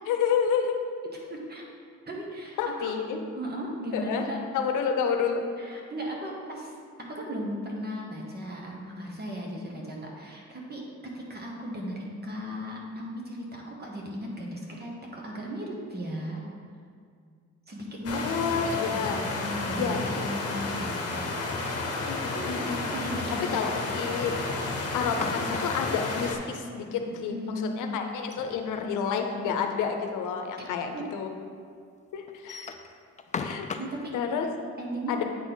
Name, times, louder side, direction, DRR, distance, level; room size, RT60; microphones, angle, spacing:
voice 1, 0.1-0.8 2.6-3.2 3.9-4.2 4.5-5.4 9.6-9.7 18.1-19.2 19.8-20.0 21.9-22.8 23.5-24.4 24.9-31.3 32.1-32.7 33.4-33.7 34.1-34.5 35.1-35.2, left 6 dB, 85° left, 4 dB, 0.7 m, -29 dB
voice 2, 1.0-1.7 2.0-2.9 3.3-4.4 5.6-16.4 17.7-18.3 18.7-21.5 22.3-24.0 27.3-28.0 30.9-31.1 33.8-34.1 34.8-35.2, equal, 35° right, -1 dB, 1.5 m, -36 dB
sound 1, 18.0-26.4, left 3 dB, 50° left, 1.0 m, -32 dB
sound 2, 24.9-26.0 28.1-29.4 29.8-29.9 30.2-30.3 31.0-31.1 32.3-34.0, left 5 dB, 25° left, 0.4 m, -37 dB
8.7 x 4.1 x 3.9 m, 2.2 s
cardioid pair, 90°, 30 cm